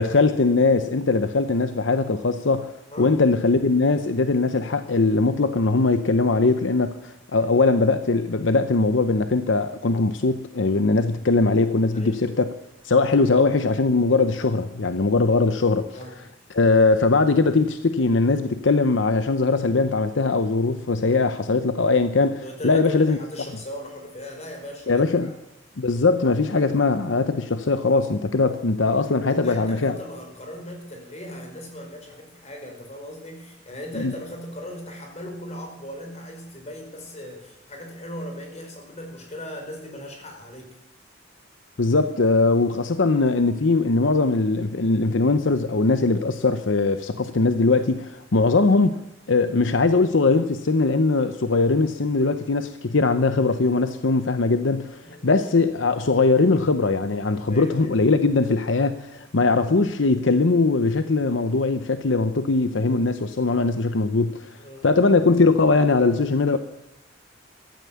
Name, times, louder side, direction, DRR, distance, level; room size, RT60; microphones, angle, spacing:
voice 1, 0.0-2.7 3.0-12.5 12.8-15.9 16.5-23.2 24.9-25.3 25.8-29.9 34.0-34.1 41.8-49.0 49.3-64.6 64.8-66.6, left 3 dB, 75° left, 10 dB, 0.8 m, -21 dB
voice 2, 2.9-3.2 11.9-12.2 15.9-16.2 22.4-25.3 26.6-26.8 29.3-40.7 55.0-55.4 57.5-57.9 64.6-65.0, left 1 dB, 35° left, 2 dB, 4.9 m, -38 dB
15.0 x 13.0 x 7.0 m, 0.82 s
head